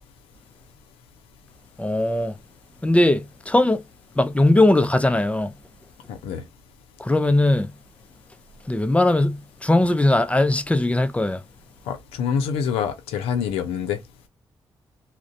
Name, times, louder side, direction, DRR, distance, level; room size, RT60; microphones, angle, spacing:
voice 1, 1.8-2.3 2.8-3.8 4.2-5.5 7.0-7.7 8.7-11.4, left 1 dB, 15° left, 0.5 m, -19 dB
voice 2, 6.1-6.4 11.9-14.0, left 7 dB, 85° left, 0.5 m, -26 dB
2.4 x 2.1 x 2.5 m
supercardioid pair, 45°, 10 cm